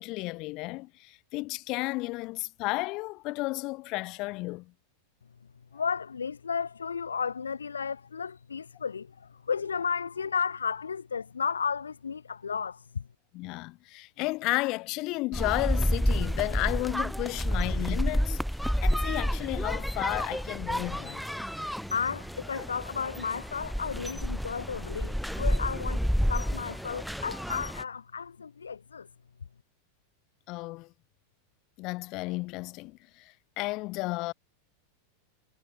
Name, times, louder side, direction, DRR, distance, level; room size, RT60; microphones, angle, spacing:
voice 1, 0.0-4.7 13.3-18.4 18.8-21.2 30.5-30.9 31.8-34.3, left 22 dB, 40° left, 0.8 m, -33 dB
voice 2, 5.7-13.0 21.9-26.0 26.3-29.1, left 6 dB, 70° left, 0.3 m, -33 dB
sound 1, 15.3-27.8, equal, ahead, 0.7 m, -30 dB
figure-of-eight pair, 90°, 0 cm